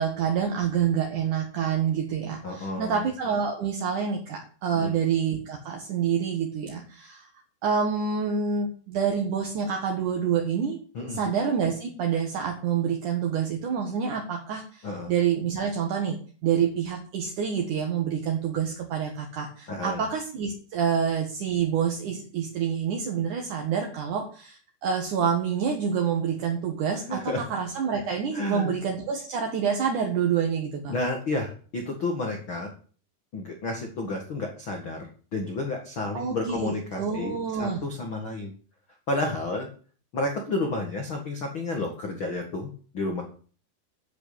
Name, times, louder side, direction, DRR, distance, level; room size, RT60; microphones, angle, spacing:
voice 1, 0.0-7.3 7.6-10.8 11.1-16.2 16.4-30.9 36.1-37.8, right 7 dB, 55° right, 1 dB, 2.4 m, -27 dB
voice 2, 2.4-3.0 4.7-5.0 10.9-11.2 14.8-15.1 19.7-20.0 27.1-27.4 28.3-28.7 30.9-32.7 33.3-38.5 39.1-39.7 40.1-43.2, left 2 dB, 85° left, 2 dB, 1.1 m, -31 dB
10.5 x 8.0 x 8.5 m, 0.42 s
omnidirectional pair, 5.6 m